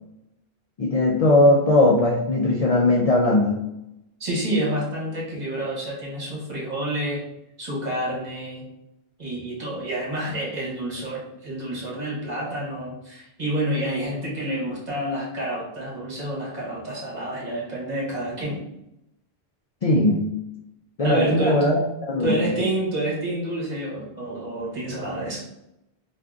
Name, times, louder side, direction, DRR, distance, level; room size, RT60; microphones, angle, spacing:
voice 1, 0.8-3.6 19.8-20.3 21.0-21.8 22.1-22.3, left 2 dB, 55° left, -2 dB, 0.4 m, -19 dB
voice 2, 4.2-7.2 7.6-8.6 9.2-18.6 21.0-21.7 22.2-25.4, right 1 dB, 40° right, -6 dB, 1.2 m, -28 dB
3.7 x 2.5 x 2.3 m, 0.86 s
omnidirectional pair, 1.1 m